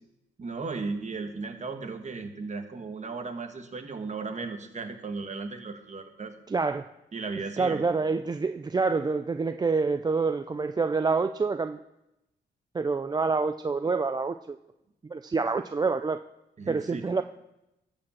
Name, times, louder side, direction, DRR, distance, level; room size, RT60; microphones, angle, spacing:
voice 1, 0.4-6.3 7.1-7.8 16.6-17.0, right 4 dB, 40° right, 6 dB, 1.4 m, -36 dB
voice 2, 6.5-6.9 7.6-11.8 12.7-14.6 15.0-16.2 16.7-17.2, right 4 dB, 20° right, 9 dB, 0.4 m, -27 dB
12.5 x 5.2 x 7.2 m, 0.90 s
cardioid pair, 80°, 19 cm